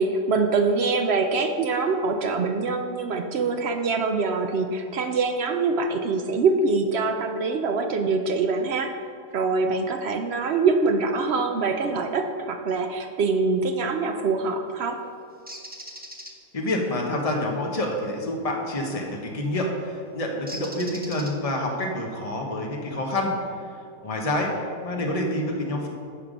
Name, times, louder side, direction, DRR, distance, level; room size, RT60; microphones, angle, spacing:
voice 1, 0.0-8.9 9.3-15.0, right 4 dB, 70° right, 5 dB, 0.6 m, -24 dB
Bird, 15.5-16.3 18.9-19.2 20.5-21.7, equal, 10° right, 0.5 m, -39 dB
voice 2, 16.5-23.3 24.0-25.9, left 1 dB, 25° left, 0 dB, 1.1 m, -27 dB
9.9 x 5.9 x 5.1 m, 2.4 s
omnidirectional pair, 1.7 m